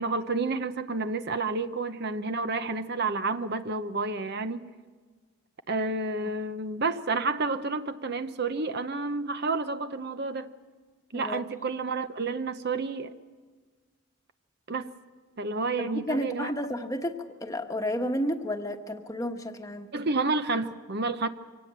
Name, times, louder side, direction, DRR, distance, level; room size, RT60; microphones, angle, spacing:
voice 1, 0.0-4.7 5.7-10.5 11.1-13.1 14.7-14.9 15.4-16.5 19.9-21.3, right 3 dB, 50° right, 0.8 m, -30 dB
voice 2, 15.8-19.9, equal, 15° left, 1.2 m, -32 dB
24.5 x 18.0 x 7.5 m
head